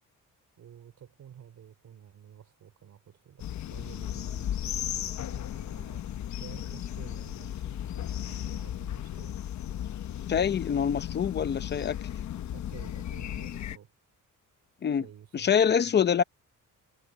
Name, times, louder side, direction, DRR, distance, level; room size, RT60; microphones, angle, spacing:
voice 1, 0.6-9.4 12.5-13.9 14.9-16.0, right 9 dB, 55° right, 3.8 m, -51 dB
sound 1, 3.4-13.8, left 11 dB, 55° left, 1.1 m, -35 dB
voice 2, 10.3-12.0 14.8-15.0 15.3-16.2, left 7 dB, 30° left, 0.7 m, -25 dB
cardioid pair, 165°, 34 cm